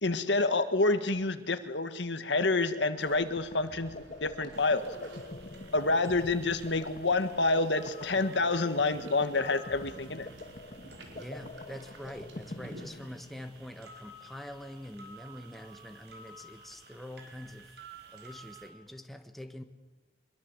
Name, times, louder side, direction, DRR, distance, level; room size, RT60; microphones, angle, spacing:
voice 1, 0.0-4.9 5.7-10.3, left 3 dB, 80° left, 9 dB, 1.7 m, -28 dB
sound 1, 2.8-13.6, left 2 dB, 45° left, 1.3 m, -46 dB
sound 2, 3.0-13.0, right 1 dB, 90° right, 5.0 m, -54 dB
sound 3, 4.5-18.7, right 2 dB, 60° right, 4.7 m, -53 dB
voice 2, 11.1-17.7 18.1-19.6, left 1 dB, ahead, 6 dB, 1.5 m, -45 dB
24.5 x 22.5 x 8.1 m, 1.2 s
head